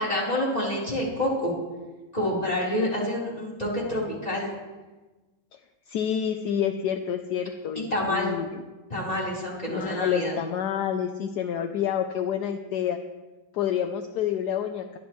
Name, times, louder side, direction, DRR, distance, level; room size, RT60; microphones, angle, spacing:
voice 1, 0.0-1.5 2.1-4.5 7.9-8.3 8.9-10.3, left 1 dB, 20° left, -5 dB, 4.1 m, -27 dB
voice 2, 5.9-8.6 9.7-13.0 13.5-15.0, left 9 dB, 70° left, 7 dB, 1.1 m, -28 dB
23.0 x 11.5 x 3.2 m, 1.2 s
omnidirectional pair, 2.2 m